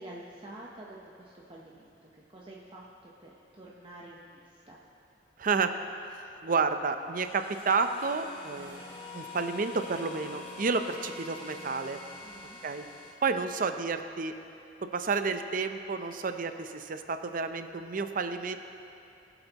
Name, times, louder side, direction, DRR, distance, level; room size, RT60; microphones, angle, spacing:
voice 1, 0.0-4.8 12.2-12.6, right 1 dB, 30° right, -4 dB, 0.9 m, -48 dB
voice 2, 5.4-5.7 6.4-8.8 9.1-12.0 12.6-12.8 13.2-14.3 14.8-18.6, right 4 dB, 50° right, 8 dB, 0.6 m, -30 dB
sound 1, 7.2-13.1, left 4 dB, 40° left, 3.0 m, -45 dB
21.5 x 8.0 x 3.0 m, 2.6 s
head